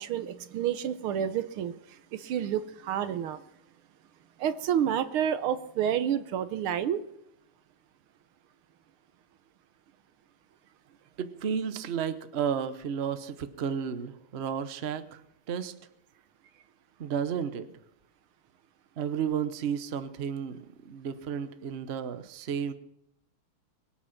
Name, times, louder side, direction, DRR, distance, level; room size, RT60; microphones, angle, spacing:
voice 1, 0.0-3.4 4.4-7.0, right 9 dB, 75° right, 12 dB, 1.7 m, -29 dB
voice 2, 11.2-15.2 15.5-15.7 17.0-17.7 19.0-22.7, right 7 dB, 55° right, 11 dB, 0.7 m, -32 dB
22.5 x 8.7 x 5.9 m, 0.80 s
omnidirectional pair, 2.4 m